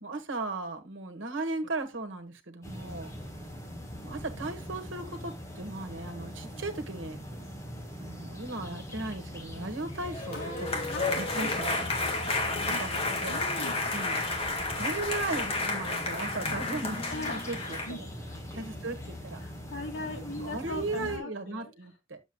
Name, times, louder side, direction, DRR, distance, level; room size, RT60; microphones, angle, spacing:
voice 1, 0.0-3.1 4.0-7.2 8.0-11.9 12.8-13.4 13.9-14.2 14.8-17.1 17.4-18.1 18.5-19.4 20.4-22.2, right 2 dB, 75° right, 1.4 m, -37 dB
sound 1, 2.6-21.2, equal, 15° left, 2.0 m, -42 dB
sound 2, 10.0-17.9, left 3 dB, 30° left, 1.7 m, -31 dB
voice 2, 10.3-11.6 12.2-13.8 17.1-18.7 19.4-21.7, left 2 dB, 75° left, 2.6 m, -41 dB
10.0 x 7.1 x 2.3 m
head